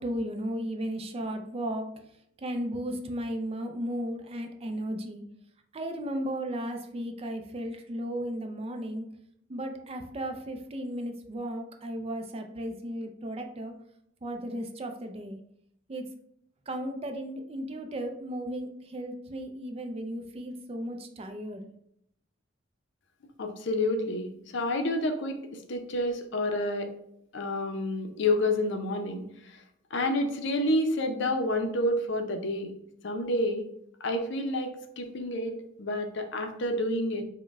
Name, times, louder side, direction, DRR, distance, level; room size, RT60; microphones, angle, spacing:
voice 1, 0.0-1.9 2.4-5.2 5.7-9.1 9.5-13.7 14.2-15.4 15.9-16.0 16.7-21.7, equal, 30° right, 5 dB, 0.4 m, -35 dB
voice 2, 23.4-26.9 27.3-29.6 29.9-32.7 33.0-33.7 34.0-37.2, left 1 dB, 65° left, 5 dB, 0.6 m, -29 dB
5.2 x 2.2 x 3.5 m, 0.74 s
head